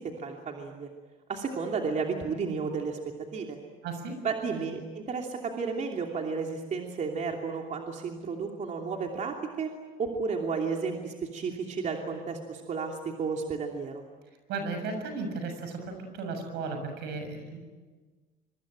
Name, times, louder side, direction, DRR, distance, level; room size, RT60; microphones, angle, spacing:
voice 1, 0.2-0.9 1.3-3.0 3.3-3.6 4.2-9.7 10.0-14.0, right 5 dB, 45° right, 2 dB, 2.9 m, -32 dB
voice 2, 3.8-4.2 14.5-17.6, right 3 dB, 80° right, 6 dB, 7.0 m, -35 dB
25.0 x 24.0 x 9.0 m, 1.3 s
cardioid pair, 110°, 17 cm